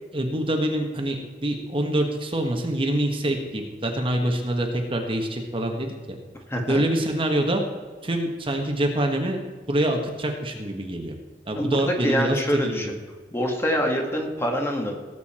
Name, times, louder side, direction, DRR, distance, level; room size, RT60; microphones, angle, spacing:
voice 1, 0.1-6.2 6.7-7.6 8.0-9.4 9.7-11.1 11.5-12.9, right 1 dB, 30° right, 3 dB, 1.4 m, -25 dB
voice 2, 6.5-6.8 11.6-12.9 13.3-15.0, equal, 15° left, 2 dB, 1.8 m, -25 dB
18.5 x 8.3 x 4.4 m, 1.5 s
head